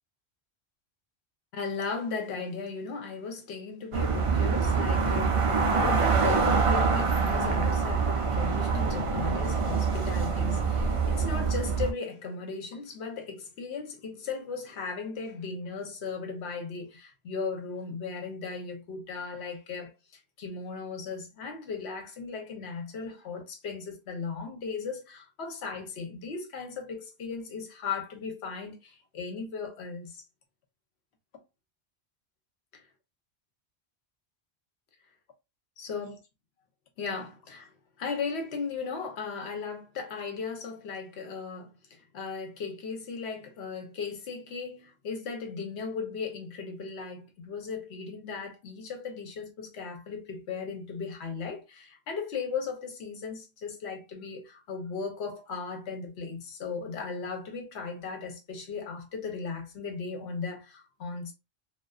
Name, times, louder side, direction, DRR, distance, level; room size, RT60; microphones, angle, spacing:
voice 1, 1.5-30.2 32.7-32.8 35.8-36.2 37.0-61.3, left 5 dB, 80° left, 1.0 m, -37 dB
sound 1, 3.9-11.9, right 5 dB, 55° right, 0.3 m, -25 dB
2.5 x 2.3 x 2.3 m
omnidirectional pair, 1.1 m